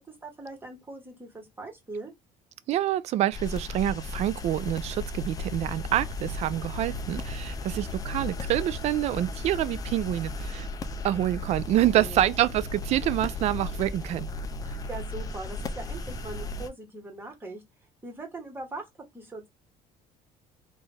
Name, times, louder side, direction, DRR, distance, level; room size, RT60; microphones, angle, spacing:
voice 1, 0.0-2.1 11.9-12.3 14.6-17.6 18.0-18.8 19.1-19.5, right 3 dB, 15° right, 1.4 m, -41 dB
voice 2, 2.7-10.7 11.0-14.3, right 13 dB, 50° right, 0.4 m, -27 dB
sound 1, 3.3-16.7, left 2 dB, 25° left, 0.5 m, -35 dB
3.9 x 2.5 x 3.3 m
cardioid pair, 145°, 15 cm